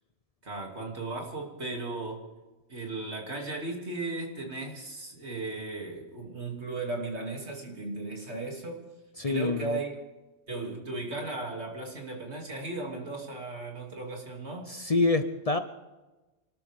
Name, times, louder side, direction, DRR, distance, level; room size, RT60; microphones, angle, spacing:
voice 1, 0.4-2.2 2.7-8.9 9.3-9.9 10.5-14.7, right 3 dB, 70° right, 0 dB, 3.1 m, -36 dB
voice 2, 9.2-9.8 14.7-15.6, left 3 dB, 35° left, 8 dB, 0.7 m, -26 dB
27.5 x 13.0 x 3.6 m, 1.1 s
omnidirectional pair, 1.2 m